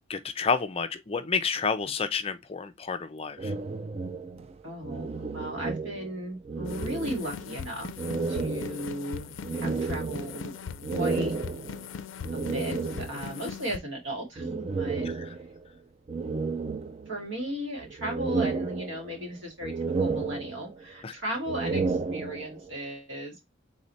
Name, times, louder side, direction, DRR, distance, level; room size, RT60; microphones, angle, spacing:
voice 1, 0.1-3.5 15.2-15.3 21.0-21.1, left 5 dB, 30° left, 0.5 m, -30 dB
sound 1, 3.4-6.2 6.4-7.6 8.0-13.4 14.4-15.7 16.1-17.4 17.8-19.3 19.6-20.9 21.4-22.7, right 4 dB, 30° right, 0.4 m, -32 dB
voice 2, 4.6-10.5 10.9-11.3 12.3-15.0 17.1-23.4, equal, 75° right, 2.3 m, -36 dB
sound 2, 6.6-13.8, left 7 dB, 80° left, 0.4 m, -40 dB
3.8 x 3.1 x 4.0 m
head